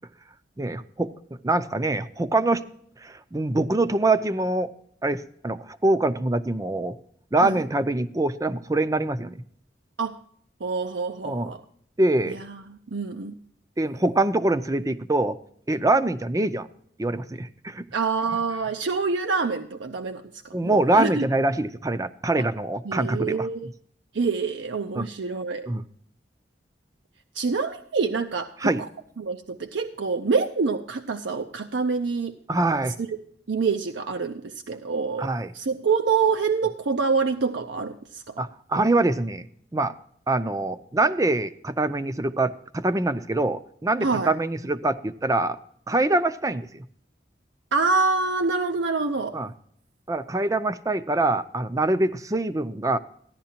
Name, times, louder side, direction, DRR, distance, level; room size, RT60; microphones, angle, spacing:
voice 1, 0.6-2.6 3.0-4.7 5.0-7.0 7.3-9.4 11.2-11.5 12.0-12.4 13.8-15.4 15.7-16.7 17.0-17.9 20.5-23.5 25.0-25.1 25.7-25.8 28.6-28.8 32.5-32.9 35.2-35.5 38.4-39.4 39.7-39.9 40.3-45.6 45.9-46.8 49.3-49.5 50.1-53.0, right 2 dB, 20° right, 12 dB, 0.5 m, -24 dB
voice 2, 10.6-11.6 12.7-13.4 17.9-20.2 20.6-21.2 22.9-23.7 24.1-25.7 27.4-28.7 29.2-32.3 33.0-33.1 33.5-35.3 35.5-38.4 44.0-44.3 47.7-49.3, right 4 dB, 85° right, 6 dB, 0.6 m, -26 dB
15.0 x 11.0 x 2.8 m, 0.63 s
head